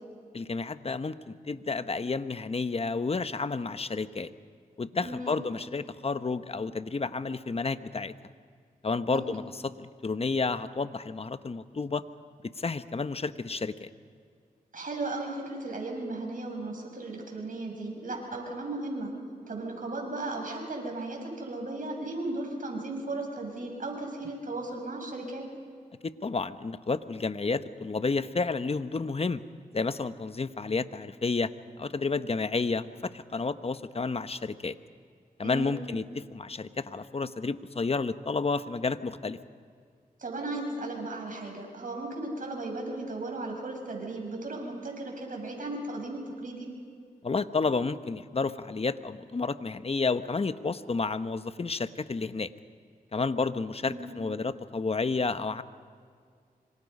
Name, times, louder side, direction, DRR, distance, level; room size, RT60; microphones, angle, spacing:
voice 1, 0.3-4.3 4.8-8.1 8.8-12.0 12.6-13.9 26.0-29.4 29.7-31.5 31.8-34.8 35.4-39.4 47.2-52.5 53.1-55.6, left 4 dB, 40° left, 11 dB, 1.0 m, -31 dB
voice 2, 5.0-5.4 9.1-9.3 14.7-19.1 19.5-25.4 35.4-35.8 40.2-46.7 53.8-54.1, right 2 dB, 60° right, 1 dB, 6.7 m, -36 dB
26.0 x 26.0 x 5.5 m, 2.1 s
cardioid pair, 55°, 16 cm